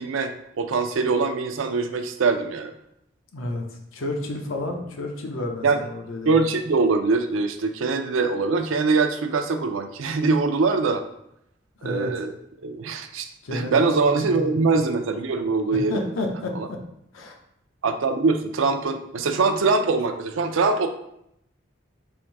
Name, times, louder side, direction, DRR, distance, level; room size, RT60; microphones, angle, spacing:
voice 1, 0.0-2.7 5.6-5.8 6.3-11.0 11.8-12.3 12.6-16.0 16.6-16.7 17.8-20.9, right 4 dB, 80° right, 7 dB, 0.4 m, -23 dB
voice 2, 3.3-6.4 11.8-12.3 13.4-14.6 15.9-16.8 17.1-17.4, left 1 dB, 85° left, 2 dB, 0.7 m, -31 dB
3.5 x 2.6 x 4.6 m, 0.77 s
head